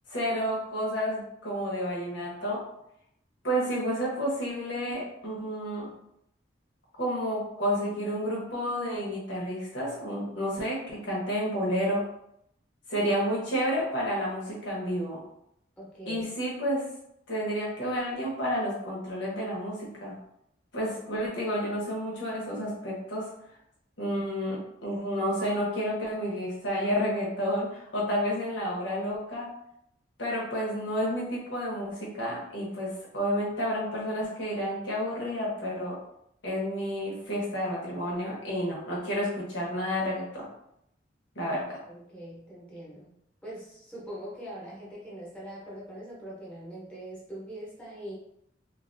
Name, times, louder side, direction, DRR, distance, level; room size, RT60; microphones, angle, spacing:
voice 1, 0.1-2.6 3.4-5.9 7.0-12.0 12.9-15.2 16.1-16.9 17.3-20.2 20.7-23.3 24.0-29.5 30.2-36.0 36.4-40.5 41.3-41.6, equal, 75° left, -5 dB, 1.1 m, -30 dB
voice 2, 15.8-16.3 41.5-41.6 41.9-43.1 43.4-48.1, right 1 dB, 5° left, -7 dB, 1.0 m, -42 dB
2.7 x 2.5 x 2.6 m, 0.77 s
head